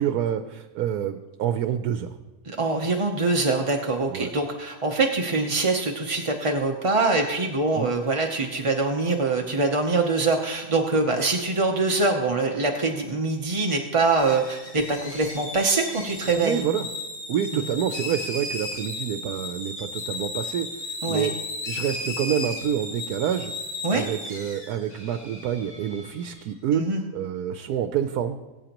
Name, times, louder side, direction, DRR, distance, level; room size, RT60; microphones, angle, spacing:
voice 1, 0.0-2.2 4.1-4.3 7.7-7.9 16.4-16.9 17.3-21.3 21.6-23.5 23.9-26.8 27.1-28.4, right 9 dB, 80° right, 9 dB, 1.1 m, -27 dB
voice 2, 2.4-16.6 17.5-17.7 21.0-21.3 23.8-24.1 26.7-27.0, right 3 dB, 30° right, 2 dB, 0.6 m, -24 dB
sound 1, 14.2-26.4, left 2 dB, 40° left, 2.4 m, -35 dB
21.0 x 9.0 x 3.0 m, 1.2 s
omnidirectional pair, 1.6 m